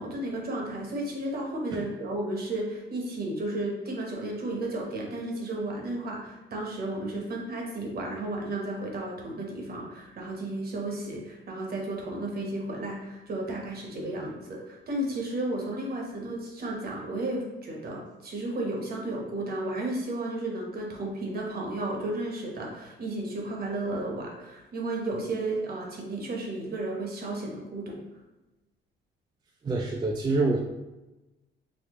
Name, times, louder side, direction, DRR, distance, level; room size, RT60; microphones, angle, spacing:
voice 1, 0.0-28.0, right 2 dB, 50° right, -1 dB, 1.0 m, -33 dB
voice 2, 29.6-30.6, right 2 dB, 20° right, 0 dB, 0.3 m, -26 dB
4.2 x 2.1 x 2.9 m, 1.1 s
cardioid pair, 90°, 20 cm